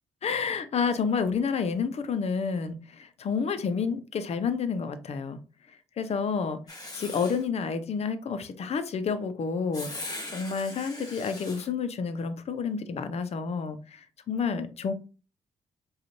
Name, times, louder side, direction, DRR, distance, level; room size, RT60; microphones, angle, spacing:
voice 1, 0.2-5.4 6.0-6.6 6.9-14.9, left 5 dB, 55° left, 0.6 m, -30 dB
Writing, 6.7-7.4 9.7-11.7, left 2 dB, 30° left, 1.4 m, -40 dB
4.9 x 2.4 x 2.9 m
supercardioid pair, 55°, 13 cm